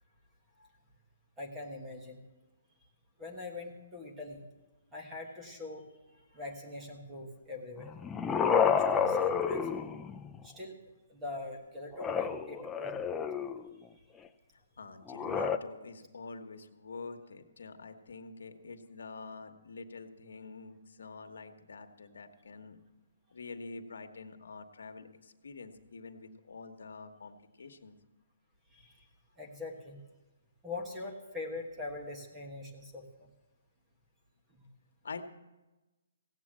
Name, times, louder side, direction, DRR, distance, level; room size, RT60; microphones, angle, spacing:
voice 1, 1.4-2.2 3.2-4.5 4.9-8.0 8.6-9.8 10.4-10.8 11.1-12.9 14.0-14.1 28.7-29.1 29.4-30.0 30.6-33.3 34.5-34.7, left 3 dB, 10° right, 1 dB, 1.4 m, -43 dB
sound 1, 7.8-10.4 11.9-13.7 15.1-15.6, left 6 dB, 10° left, 0.4 m, -30 dB
voice 2, 14.8-22.8 23.3-28.0 35.0-35.2, left 4 dB, 80° left, 7 dB, 1.3 m, -46 dB
16.5 x 8.4 x 7.5 m, 1.1 s
hypercardioid pair, 165°, 0 cm